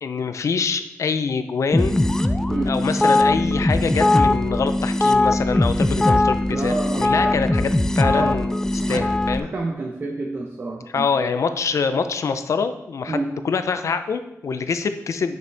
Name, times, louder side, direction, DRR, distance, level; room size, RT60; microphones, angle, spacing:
voice 1, 0.0-2.0 2.7-8.6 8.9-9.5 10.9-15.4, left 5 dB, 65° left, 10 dB, 0.5 m, -25 dB
sound 1, 1.7-9.4, left 2 dB, 10° left, 0.3 m, -20 dB
voice 2, 6.5-7.4 8.1-8.4 8.8-9.1 9.4-11.3 13.1-13.3, right 2 dB, 35° right, 0 dB, 0.7 m, -29 dB
8.0 x 6.5 x 3.4 m, 0.87 s
wide cardioid pair, 165°, 6 cm